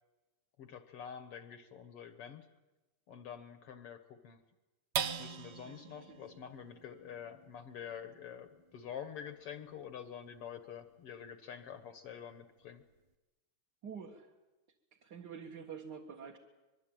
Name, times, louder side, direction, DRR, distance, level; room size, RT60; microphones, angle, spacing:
voice 1, 0.6-2.5 3.1-4.4 5.2-12.8, left 8 dB, 60° left, 10 dB, 1.9 m, -47 dB
sound 1, 4.9-11.6 12.1-12.2 12.6-13.1, right 8 dB, 85° right, 0.8 m, -44 dB
voice 2, 5.6-6.2 13.8-14.3 15.0-16.4, right 6 dB, 40° right, 0 dB, 2.0 m, -47 dB
25.0 x 22.0 x 9.0 m, 1.1 s
omnidirectional pair, 3.3 m